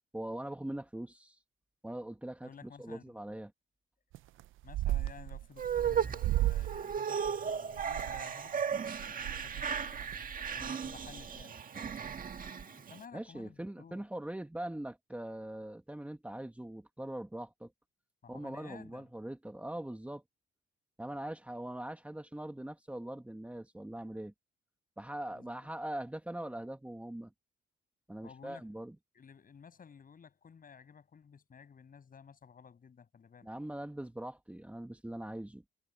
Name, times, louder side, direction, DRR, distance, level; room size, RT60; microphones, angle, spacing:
voice 1, 0.1-1.4 1.8-3.5 13.1-17.7 18.3-20.2 21.0-24.3 25.0-27.3 28.1-28.9 33.4-35.6, right 1 dB, 5° right, 2.1 m, -42 dB
voice 2, 2.4-3.0 4.6-10.1 10.5-11.9 12.5-14.0 18.2-19.1 25.3-25.6 28.2-28.7 29.1-33.5, left 6 dB, 45° left, 8.0 m, -54 dB
sound 1, 4.1-4.4 4.7-5.8 6.2-6.8 7.2-8.2 8.7-8.8 9.0-10.1, right 14 dB, 80° right, 0.7 m, -33 dB
sound 2, 5.6-13.0, right 7 dB, 45° right, 1.7 m, -36 dB
cardioid pair, 90°, 20 cm